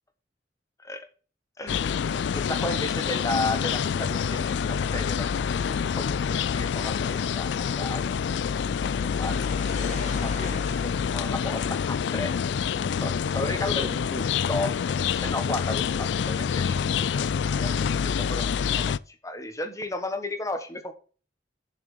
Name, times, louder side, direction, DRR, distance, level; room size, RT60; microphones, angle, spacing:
voice 1, 1.6-8.0 8.8-12.3 12.7-20.9, left 2 dB, 20° left, 8 dB, 1.4 m, -34 dB
sound 1, 1.7-19.0, left 7 dB, 75° left, 0.3 m, -27 dB
sound 2, 7.4-12.5, left 3 dB, 40° left, 1.9 m, -44 dB
7.5 x 6.4 x 6.6 m, 0.38 s
head